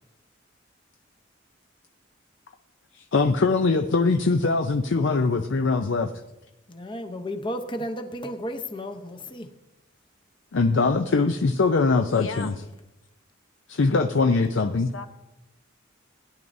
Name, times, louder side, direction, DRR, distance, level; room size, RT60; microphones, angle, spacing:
voice 1, 2.9-6.1 10.5-12.5 13.7-14.9, left 3 dB, 65° left, 6 dB, 0.5 m, -22 dB
voice 2, 6.7-9.5, equal, 25° left, 6 dB, 0.8 m, -33 dB
voice 3, 12.1-12.5 14.5-15.1, left 4 dB, 80° left, 7 dB, 0.9 m, -36 dB
16.5 x 10.5 x 2.7 m, 0.94 s
head